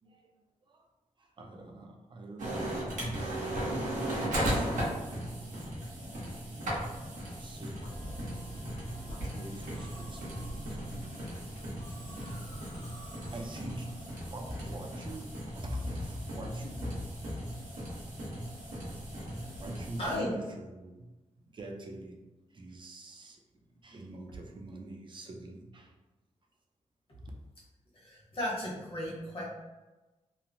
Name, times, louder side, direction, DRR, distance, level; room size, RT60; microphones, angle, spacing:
voice 1, 0.0-0.3 0.7-0.9 1.2-2.7 3.3-5.2 6.4-6.7 7.2-8.1 9.0-17.4 18.7-18.8 19.6-22.2 22.5-26.0 27.2-27.3, equal, 40° right, 1 dB, 0.5 m, -45 dB
sound 1, 2.4-20.2, right 1 dB, 90° right, 0.9 m, -37 dB
Musical instrument, 7.8-15.1, right 1 dB, 90° left, 0.9 m, -47 dB
voice 2, 20.0-20.3 27.9-29.4, left 1 dB, 50° left, -5 dB, 1.1 m, -35 dB
2.9 x 2.1 x 2.6 m, 1.1 s
wide cardioid pair, 85°, 13 cm